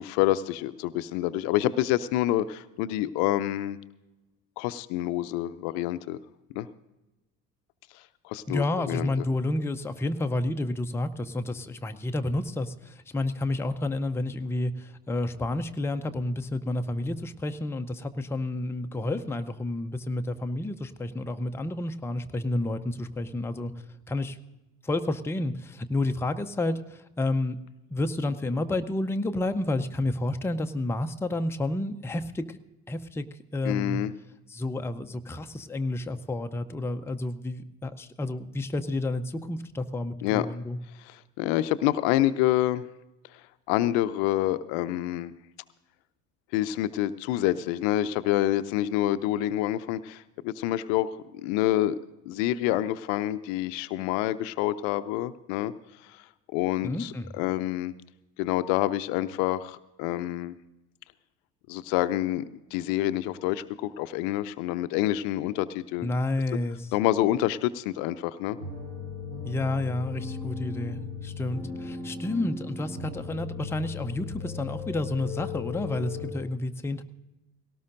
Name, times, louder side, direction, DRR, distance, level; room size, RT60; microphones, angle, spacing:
voice 1, 0.0-3.8 4.6-6.2 6.6-6.7 8.2-9.1 33.6-34.1 40.2-40.5 41.0-42.8 43.7-45.3 46.5-51.1 51.4-52.0 52.3-55.7 56.1-56.2 56.5-57.9 58.4-60.5 61.7-62.4 62.7-66.1 66.9-68.6, left 14 dB, 60° left, 14 dB, 0.6 m, -27 dB
voice 2, 8.5-23.7 24.1-24.4 24.8-27.6 27.9-32.6 32.9-33.2 33.5-34.0 34.5-40.8 56.8-57.3 66.0-66.9 69.4-77.0, left 2 dB, 5° left, 7 dB, 0.6 m, -30 dB
sound 1, 68.6-76.3, left 5 dB, 75° right, 3.5 m, -37 dB
18.5 x 18.0 x 2.6 m, 1.0 s
figure-of-eight pair, 55°, 47 cm